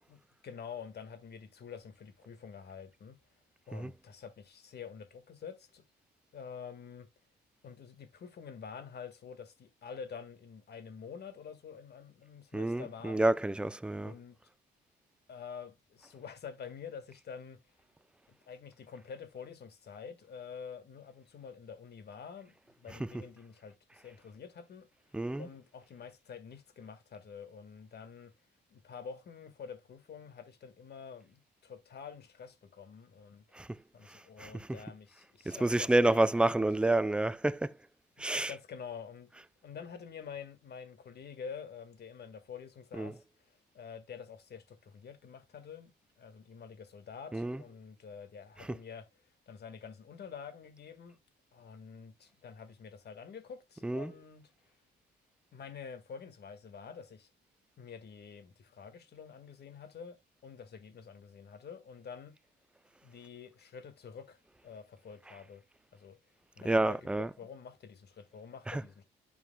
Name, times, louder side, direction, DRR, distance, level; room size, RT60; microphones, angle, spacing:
voice 1, 0.1-3.2 3.7-5.8 6.3-7.1 7.6-13.2 13.9-14.4 15.3-17.6 18.3-24.9 25.4-28.3 28.7-33.4 33.9-36.7 38.3-39.3 39.6-43.2 43.7-45.9 46.2-49.1 49.5-51.2 51.5-54.5 55.5-57.3 57.8-60.2 60.4-62.3 63.0-65.6 65.9-66.2 66.6-69.0, left 6 dB, 55° left, 1.7 m, -47 dB
voice 2, 12.5-14.1 22.9-23.3 25.1-25.5 33.5-33.8 34.1-34.9 35.5-37.8 38.2-38.6 39.3-39.4 42.9-43.2 47.3-47.7 48.6-48.8 53.8-54.1 65.3-65.4 66.6-67.3 68.7-68.9, right 2 dB, 5° right, 0.4 m, -30 dB
11.0 x 4.8 x 2.2 m
cardioid pair, 90°, 20 cm